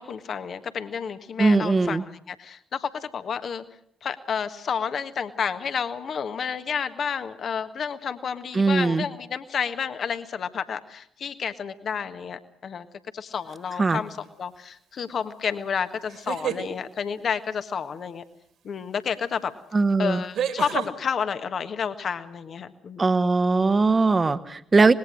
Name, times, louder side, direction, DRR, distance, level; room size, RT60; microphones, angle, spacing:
voice 1, 0.0-2.0 2.3-3.6 4.0-12.9 13.1-18.2 18.6-19.5 20.0-23.1, left 6 dB, 50° left, 10 dB, 1.5 m, -30 dB
voice 2, 1.4-2.0 8.5-9.0 13.8-14.0 19.7-20.2 23.0-24.9, right 3 dB, 30° right, 12 dB, 1.3 m, -20 dB
sound 1, 13.5-13.9 16.0-16.7 19.0-19.1 20.3-20.9, right 8 dB, 60° right, 2.8 m, -29 dB
25.5 x 20.0 x 6.4 m, 0.67 s
figure-of-eight pair, 40°, 0 cm